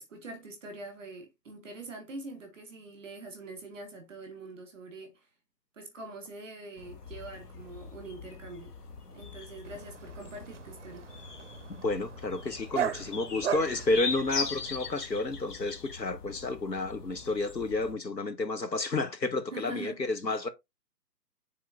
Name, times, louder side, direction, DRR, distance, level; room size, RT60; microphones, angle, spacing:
voice 1, 0.0-5.2 5.7-8.7 9.1-11.0 19.5-20.0 20.3-20.4, right 3 dB, ahead, 0.6 m, -44 dB
sound 1, 6.8-17.9, left 4 dB, 65° left, 1.4 m, -41 dB
Dog, 9.6-15.0, right 9 dB, 50° right, 0.5 m, -38 dB
voice 2, 11.7-20.5, left 3 dB, 85° left, 1.4 m, -31 dB
10.5 x 3.7 x 2.4 m
figure-of-eight pair, 135°, 49 cm